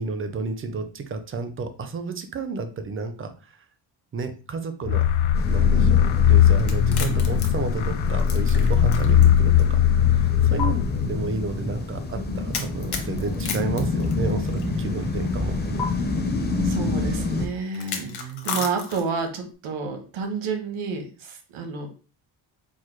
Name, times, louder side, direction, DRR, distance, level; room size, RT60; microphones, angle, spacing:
voice 1, 0.0-3.6 4.1-5.1 5.5-9.8 10.2-16.1 18.0-18.6, right 4 dB, 30° right, 9 dB, 0.5 m, -31 dB
sound 1, 4.8-11.4, left 9 dB, 70° left, 0.5 m, -19 dB
sound 2, 5.3-17.5, left 3 dB, 20° left, 0.5 m, -28 dB
sound 3, 6.6-9.3 9.6-9.7 10.6-10.7 12.5-14.6 15.8-15.9 17.7-19.2, left 6 dB, 55° left, 1.0 m, -33 dB
voice 2, 16.6-21.9, right 5 dB, 85° right, 4 dB, 1.2 m, -30 dB
4.7 x 2.1 x 4.5 m, 0.36 s
cardioid pair, 160°, 48 cm